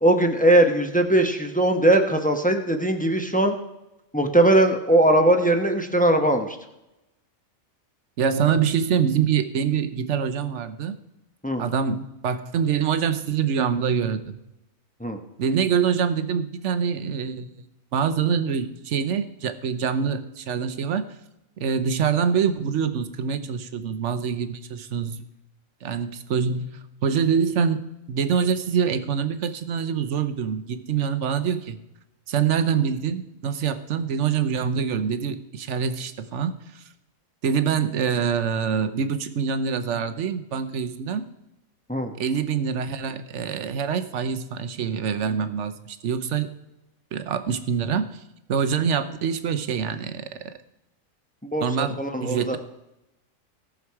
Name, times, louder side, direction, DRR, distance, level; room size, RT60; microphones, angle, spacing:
voice 1, 0.0-3.6 4.1-6.6 11.4-11.6 15.0-15.2 41.9-42.1 51.4-52.6, right 1 dB, 5° left, 4 dB, 0.9 m, -20 dB
voice 2, 8.2-11.0 11.6-14.4 15.4-17.5 17.9-21.1 21.6-25.2 25.8-31.8 32.3-36.8 37.4-41.3 42.2-46.6 47.1-48.2 48.5-50.5 51.6-52.6, right 7 dB, 65° right, 10 dB, 1.1 m, -25 dB
17.5 x 6.4 x 4.7 m, 0.91 s
omnidirectional pair, 1.4 m